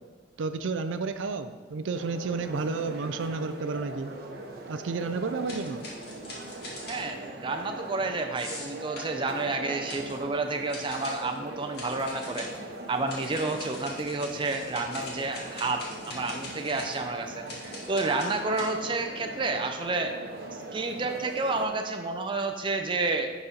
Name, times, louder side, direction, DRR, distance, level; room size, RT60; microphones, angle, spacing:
voice 1, 0.4-4.1 4.7-5.8, right 4 dB, 75° right, 10 dB, 0.4 m, -31 dB
sound 1, 1.9-21.7, right 2 dB, 50° right, 0.9 m, -41 dB
sound 2, 5.5-7.3 8.3-9.1 9.9-10.2 10.7-11.2 11.7-12.6 13.1-18.6, left 2 dB, 55° left, 2.1 m, -42 dB
voice 2, 6.9-12.5 12.9-20.2 20.7-23.3, right 3 dB, 25° right, 4 dB, 0.5 m, -30 dB
11.0 x 4.2 x 3.9 m, 1.5 s
head